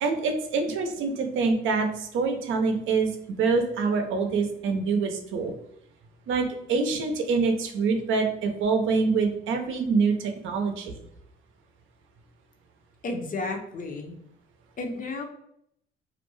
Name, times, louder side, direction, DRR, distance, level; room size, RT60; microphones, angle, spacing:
voice 1, 0.0-5.5 6.3-10.9, right 4 dB, 80° right, 4 dB, 0.5 m, -25 dB
voice 2, 13.0-14.2 14.8-15.2, left 3 dB, 45° left, 4 dB, 0.6 m, -32 dB
2.4 x 2.2 x 3.0 m, 0.72 s
cardioid pair, 90°, 20 cm